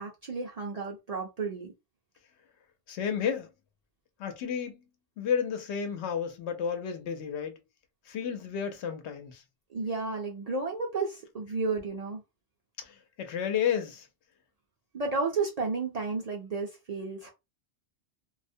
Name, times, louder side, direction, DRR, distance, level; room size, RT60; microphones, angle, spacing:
voice 1, 0.0-1.7 9.7-12.2 14.9-17.3, right 4 dB, 50° right, 0.5 m, -32 dB
voice 2, 2.9-3.5 4.2-4.9 5.2-7.6 8.1-9.4 12.8-14.1, left 7 dB, 80° left, 0.9 m, -32 dB
2.3 x 2.0 x 2.6 m
omnidirectional pair, 1.1 m